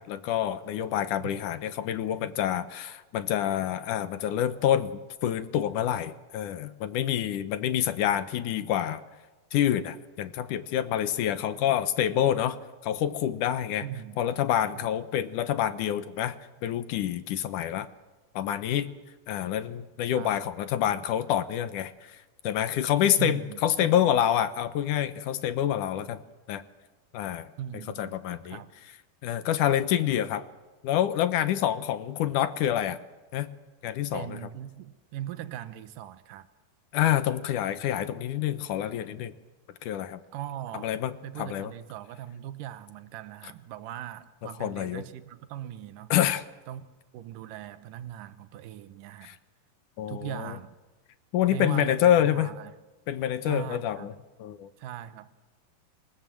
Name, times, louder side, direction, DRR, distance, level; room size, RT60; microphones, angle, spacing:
voice 1, 0.0-9.0 9.5-12.6 12.8-13.9 14.2-16.4 16.6-17.9 18.4-18.9 19.3-22.2 22.4-26.2 26.5-26.6 27.1-27.5 28.0-28.6 29.2-30.5 30.8-33.0 33.3-33.5 33.8-34.4 36.9-39.3 39.8-40.2 40.8-41.7 44.6-45.0 46.1-46.4 49.2-49.4 50.0-50.6 51.3-52.5 53.1-54.1 54.4-54.7, left 11 dB, 70° left, 2.3 m, -27 dB
voice 2, 13.8-14.4 14.8-14.9 20.1-20.3 23.2-24.0 27.6-28.2 28.5-28.7 34.1-36.5 40.3-40.9 41.2-46.1 46.7-46.9 47.1-49.3 50.1-50.7 51.5-52.7 53.4-54.1 54.8-55.3, right 11 dB, 75° right, 2.6 m, -39 dB
27.0 x 19.0 x 7.6 m
omnidirectional pair, 4.0 m